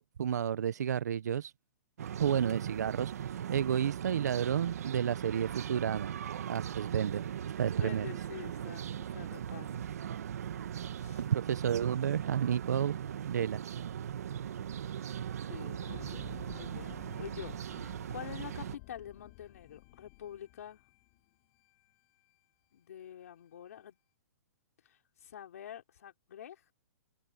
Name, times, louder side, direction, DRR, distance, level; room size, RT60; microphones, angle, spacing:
voice 1, 0.0-1.5 2.2-6.2 6.5-7.3 7.6-8.1 11.2-13.0 13.3-13.6, right 9 dB, 85° right, 0.6 m, -31 dB
sound 1, 2.0-18.8, right 9 dB, 65° right, 1.3 m, -39 dB
voice 2, 7.7-9.9 10.9-11.2 15.5-16.2 16.5-20.8 22.7-24.0 24.8-26.7, left 10 dB, 65° left, 4.6 m, -47 dB
sound 2, 15.8-22.0 22.3-22.4, left 28 dB, 30° left, 6.1 m, -54 dB
hypercardioid pair, 170°, 9 cm